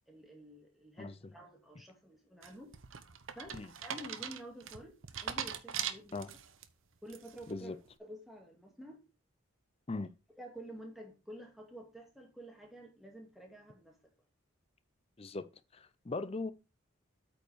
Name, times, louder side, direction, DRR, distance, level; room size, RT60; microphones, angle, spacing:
voice 1, 0.1-2.7 3.4-6.2 7.0-9.0 10.4-14.0, equal, ahead, 2.2 m, -50 dB
sound 1, 2.4-6.6 7.1-7.5, right 8 dB, 65° right, 0.8 m, -41 dB
voice 2, 15.7-16.5, left 3 dB, 30° left, 0.5 m, -39 dB
8.4 x 5.1 x 5.0 m
head